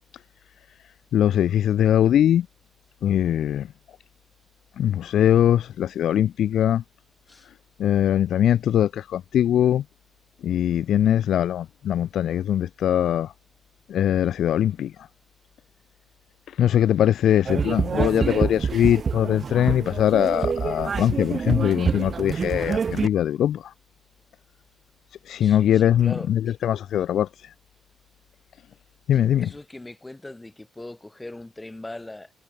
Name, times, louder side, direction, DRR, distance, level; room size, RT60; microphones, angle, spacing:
voice 1, 1.1-2.5 3.0-3.7 4.8-6.8 7.8-9.8 10.4-13.3 13.9-14.9 16.6-23.7 25.3-27.3 29.1-29.5, left 10 dB, 70° left, 0.4 m, -21 dB
sound 1, 17.5-23.1, right 6 dB, 45° right, 0.5 m, -26 dB
voice 2, 25.3-26.6 29.1-32.3, left 2 dB, 15° left, 5.1 m, -40 dB
cardioid pair, 90°, 0 cm